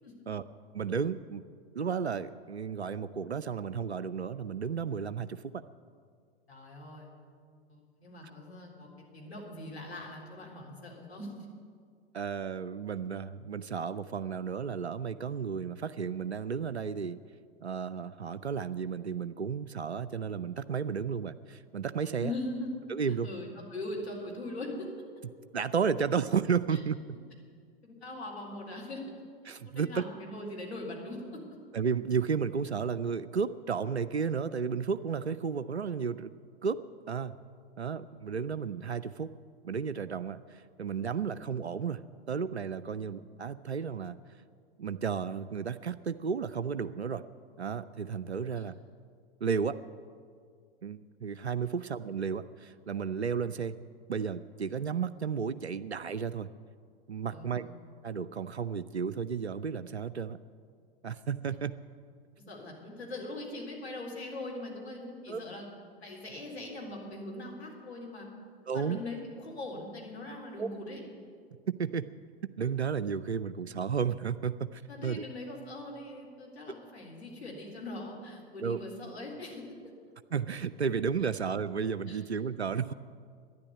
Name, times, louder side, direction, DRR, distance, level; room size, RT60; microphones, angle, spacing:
voice 1, 0.7-1.4 1.7-5.6 12.1-17.2 17.6-22.3 22.9-23.3 25.5-27.0 29.5-30.0 31.7-36.3 36.6-36.8 37.1-37.3 37.8-39.3 39.6-42.0 42.3-44.2 44.8-47.2 47.6-48.7 49.4-49.8 50.8-53.8 54.1-56.5 57.1-57.7 58.0-60.4 61.0-61.7 65.3-65.4 68.7-69.0 70.6-70.7 71.8-72.1 72.6-75.2 78.6-78.8 80.3-82.9, right 6 dB, 90° right, 13 dB, 0.5 m, -33 dB
voice 2, 6.5-7.1 7.7-8.9 9.1-11.4 22.2-22.7 23.2-24.9 26.7-26.8 27.8-29.0 29.7-31.2 42.9-43.1 48.5-48.6 57.3-57.7 62.5-65.7 66.0-68.3 68.7-71.0 74.9-79.6 82.1-82.2, left 2 dB, 80° left, -1 dB, 3.8 m, -41 dB
12.5 x 10.5 x 9.4 m, 2.1 s
figure-of-eight pair, 95°, 32 cm